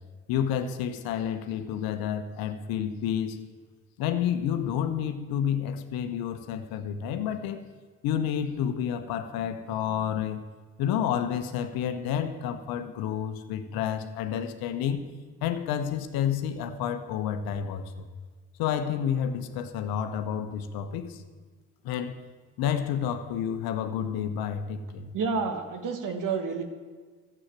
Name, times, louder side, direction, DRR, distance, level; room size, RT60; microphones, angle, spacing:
voice 1, 0.3-3.4 4.0-7.7 8.0-10.4 10.8-15.0 15.4-18.0 18.6-21.2 21.8-22.2 22.6-25.1, left 9 dB, 70° left, 9 dB, 1.2 m, -30 dB
voice 2, 25.1-26.6, right 5 dB, 55° right, 6 dB, 2.0 m, -29 dB
13.0 x 8.2 x 7.5 m, 1.5 s
hypercardioid pair, 55°, 38 cm